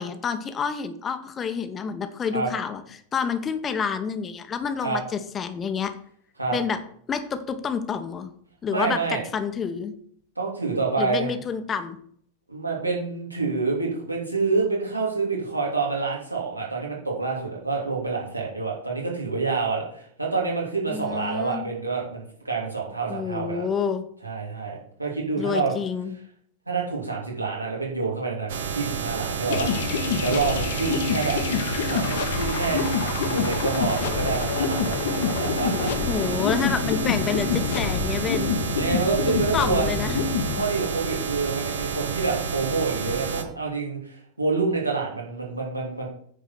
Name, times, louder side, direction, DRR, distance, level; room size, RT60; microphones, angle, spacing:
voice 1, 0.0-5.9 6.5-6.8 7.1-8.3 8.6-9.9 11.0-12.0 20.9-21.7 23.1-24.1 25.4-26.1 36.1-38.5 39.5-40.2, left 6 dB, 25° left, 9 dB, 1.0 m, -28 dB
voice 2, 8.7-9.2 10.4-11.3 12.5-23.7 24.2-25.7 26.7-29.7 30.2-31.4 31.8-35.9 36.2-36.4 38.7-39.9 40.5-46.1, right 4 dB, 85° right, -2 dB, 3.1 m, -27 dB
sound 1, 28.5-43.4, right 6 dB, 60° right, 1.1 m, -30 dB
sound 2, 29.5-40.6, left 6 dB, 55° left, 1.0 m, -27 dB
9.7 x 4.7 x 6.1 m, 0.63 s
figure-of-eight pair, 90°, 0 cm